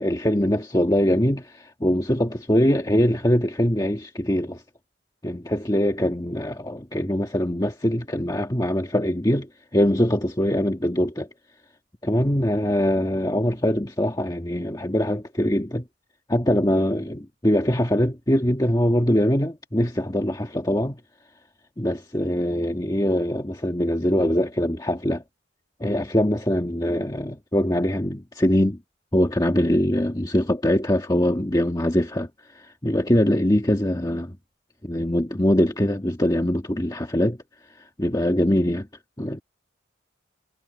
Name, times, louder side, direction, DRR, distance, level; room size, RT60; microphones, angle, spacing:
voice 1, 0.0-4.6 5.2-11.3 12.0-15.8 16.3-21.0 21.8-25.2 25.8-28.8 29.1-32.3 32.5-34.4 34.8-37.4 38.0-38.9 39.2-39.4, equal, 20° left, 1.5 m, -22 dB
head